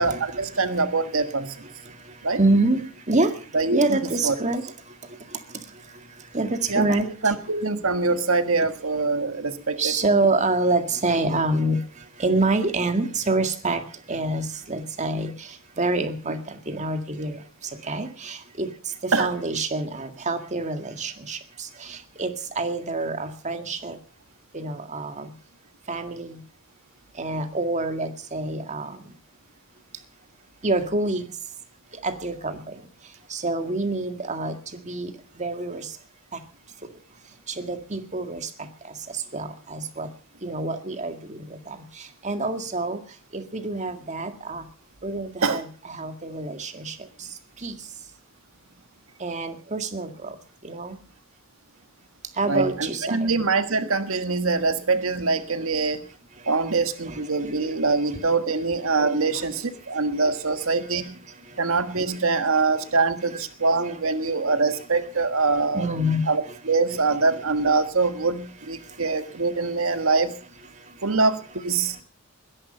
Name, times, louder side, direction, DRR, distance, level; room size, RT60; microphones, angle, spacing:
voice 1, 0.0-1.7 2.2-2.4 3.5-4.3 6.7-9.9 19.1-19.3 45.4-45.6 52.5-56.0 56.5-61.2 61.6-65.9 66.3-70.4 71.0-72.0, right 3 dB, 75° right, 9 dB, 1.6 m, -24 dB
voice 2, 2.4-2.8 3.1-3.3 3.7-4.6 6.3-7.1 9.8-11.8 12.2-13.8 14.1-15.3 15.8-16.4 16.7-17.4 17.9-18.7 19.2-21.4 21.9-24.0 24.5-25.3 25.9-26.4 27.2-28.9 30.6-31.3 32.0-32.5 33.3-35.1 35.4-35.9 37.6-38.4 39.3-40.1 40.4-41.4 41.7-41.8 42.2-43.0 43.3-44.6 45.0-46.9 47.6-47.7 49.2-50.3 50.6-51.0 52.4-53.3 57.1-57.2 63.8-63.9 65.7-66.2, right 2 dB, 35° right, 7 dB, 2.0 m, -26 dB
20.5 x 11.0 x 5.6 m, 0.41 s
head